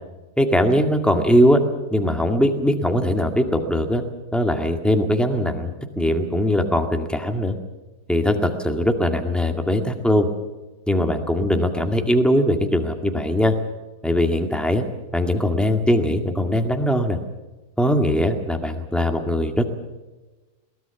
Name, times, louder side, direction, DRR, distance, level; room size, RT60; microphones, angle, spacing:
voice 1, 0.4-1.6 1.9-4.0 4.3-7.6 8.1-10.3 10.9-13.6 14.0-14.8 15.1-17.2 17.8-19.6, equal, ahead, 5 dB, 1.8 m, -20 dB
22.0 x 18.5 x 7.1 m, 1.2 s
omnidirectional pair, 1.6 m